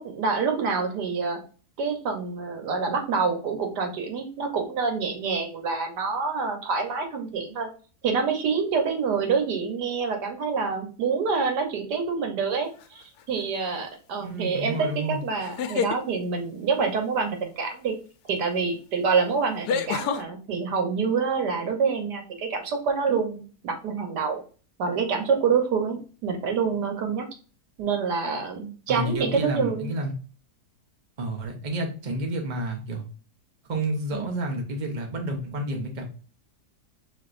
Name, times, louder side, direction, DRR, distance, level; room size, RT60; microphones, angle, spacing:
voice 1, 0.0-1.4 1.8-7.7 8.0-17.9 18.3-24.4 24.8-26.0 26.2-27.2 27.8-29.9 34.1-34.3, right 5 dB, 80° right, 4 dB, 1.5 m, -27 dB
sound 1, 12.8-13.2 15.4-16.0 18.3-18.4 19.7-20.2, left 7 dB, 80° left, 1.2 m, -27 dB
voice 2, 14.2-15.2 28.9-30.1 31.2-33.0 33.7-36.1, right 1 dB, 35° right, 2 dB, 1.0 m, -30 dB
6.3 x 3.0 x 2.5 m, 0.38 s
omnidirectional pair, 1.7 m